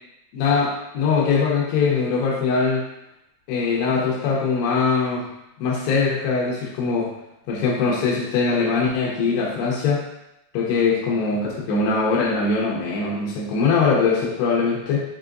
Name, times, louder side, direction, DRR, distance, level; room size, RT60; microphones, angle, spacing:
voice 1, 0.3-2.8 3.5-5.3 5.6-7.1 7.5-10.0 10.5-15.0, left 4 dB, 85° left, -5 dB, 3.0 m, -21 dB
7.1 x 2.8 x 2.5 m, 0.87 s
omnidirectional pair, 4.7 m